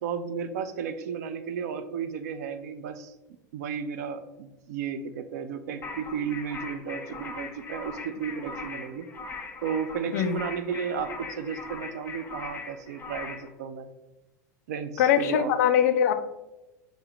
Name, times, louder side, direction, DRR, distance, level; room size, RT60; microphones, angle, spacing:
voice 1, 0.0-3.1 3.5-9.1 9.6-13.9 14.7-15.5, right 7 dB, 60° right, 10 dB, 0.4 m, -33 dB
sound 1, 5.8-13.5, left 4 dB, 20° left, 0.7 m, -40 dB
voice 2, 15.0-16.1, left 9 dB, 60° left, 10 dB, 0.4 m, -22 dB
6.6 x 2.6 x 3.0 m, 1.0 s
figure-of-eight pair, 80°, 10 cm